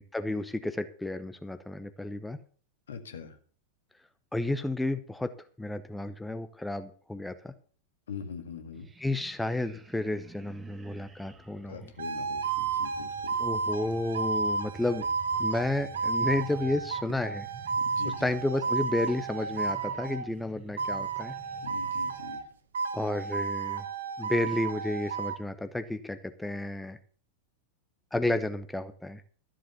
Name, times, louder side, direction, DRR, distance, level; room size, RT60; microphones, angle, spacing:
voice 1, 0.0-2.4 4.3-5.3 5.6-7.5 9.0-11.9 13.4-15.1 15.4-17.5 18.0-21.3 22.9-23.8 24.2-27.0 28.1-29.2, left 2 dB, 5° left, 10 dB, 0.8 m, -31 dB
voice 2, 2.9-3.4 8.1-8.9 11.7-13.4 17.8-18.3 21.6-22.4, left 7 dB, 65° left, 8 dB, 1.8 m, -42 dB
sound 1, 8.7-22.2, right 4 dB, 15° right, 1.4 m, -51 dB
sound 2, 12.0-20.3 20.8-22.5 22.7-25.4, right 5 dB, 65° right, 1.1 m, -32 dB
13.0 x 7.6 x 6.9 m, 0.43 s
figure-of-eight pair, 90°, 0 cm